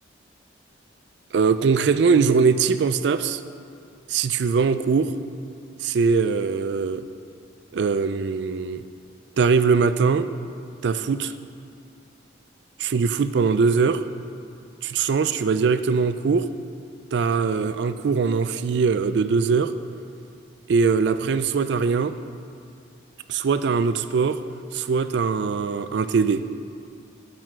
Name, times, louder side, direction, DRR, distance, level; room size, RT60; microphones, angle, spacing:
voice 1, 1.3-3.4 4.1-5.2 5.8-7.0 7.7-8.8 9.4-10.3 10.8-11.3 12.8-14.0 14.8-16.5 17.1-19.7 20.7-22.1 23.3-24.4 24.7-26.4, right 5 dB, 65° right, 12 dB, 0.3 m, -21 dB
8.9 x 6.2 x 6.3 m, 2.5 s
head